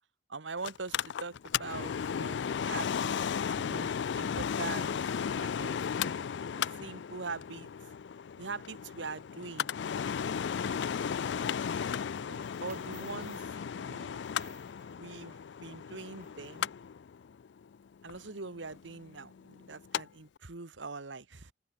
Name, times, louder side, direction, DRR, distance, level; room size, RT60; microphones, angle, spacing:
voice 1, 0.3-5.0 5.4-7.7 8.4-9.7 12.3-14.3 15.0-16.7 18.0-21.5, right 4 dB, 90° right, 1.5 m, -43 dB
Mechanical fan, 0.6-20.0 20.4-20.5, left 7 dB, 75° left, 0.4 m, -35 dB
sound 1, 12.1-16.8, right 6 dB, 45° right, 7.0 m, -60 dB
open air
head